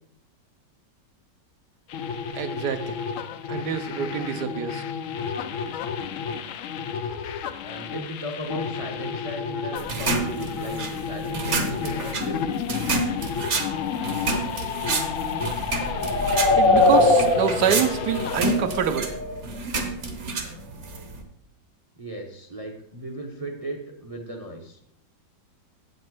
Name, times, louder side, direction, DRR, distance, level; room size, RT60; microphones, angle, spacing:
sound 1, 1.9-18.4, left 7 dB, 75° left, 0.7 m, -32 dB
voice 1, 2.3-3.0 3.5-4.8 16.6-19.1, right 8 dB, 70° right, 10 dB, 1.2 m, -26 dB
voice 2, 7.6-12.6 22.0-24.8, right 1 dB, 30° right, 2 dB, 0.7 m, -36 dB
sound 2, 9.8-21.2, right 3 dB, 45° right, 1.2 m, -30 dB
sound 3, 13.6-19.4, left 2 dB, 45° left, 0.8 m, -23 dB
7.7 x 5.4 x 6.0 m, 0.70 s
omnidirectional pair, 2.0 m